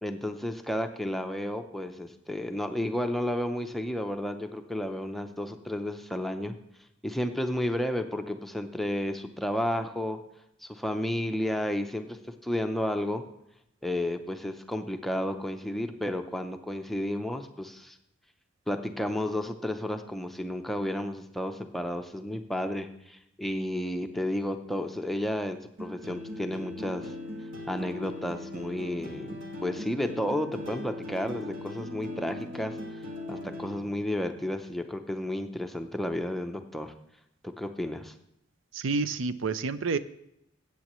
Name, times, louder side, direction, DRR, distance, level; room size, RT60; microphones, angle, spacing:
voice 1, 0.0-6.5 7.0-10.2 10.6-13.2 13.8-18.0 18.7-27.1 27.7-32.8 33.3-36.9 37.4-38.1, left 1 dB, ahead, 6 dB, 0.6 m, -32 dB
sound 1, 25.8-33.8, left 1 dB, 70° right, 1.7 m, -39 dB
voice 2, 38.7-40.0, right 4 dB, 90° right, 14 dB, 0.5 m, -29 dB
15.0 x 8.3 x 3.1 m, 0.79 s
head